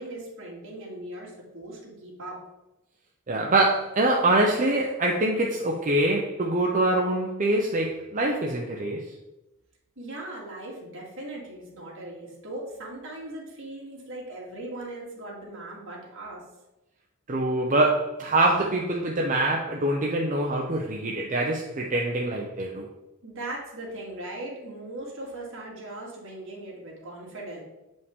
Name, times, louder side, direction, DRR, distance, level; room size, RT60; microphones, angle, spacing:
voice 1, 0.0-2.4 10.0-16.4 23.2-27.6, right 1 dB, 65° right, -4 dB, 2.5 m, -39 dB
voice 2, 3.3-9.1 17.3-22.9, right 2 dB, 35° right, -1 dB, 0.7 m, -24 dB
8.0 x 5.3 x 3.6 m, 0.99 s
head